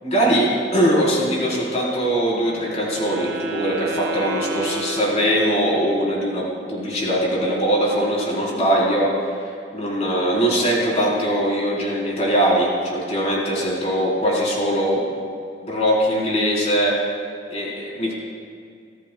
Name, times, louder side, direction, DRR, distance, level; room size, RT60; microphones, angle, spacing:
voice 1, 0.0-6.4 6.7-9.1 9.7-15.0 15.6-17.0 17.5-18.1, equal, 40° left, -5 dB, 4.2 m, -21 dB
Wind instrument woodwind instrument, 2.3-5.9, right 2 dB, 90° right, 1.6 m, -32 dB
25.0 x 15.0 x 2.3 m, 2.3 s
head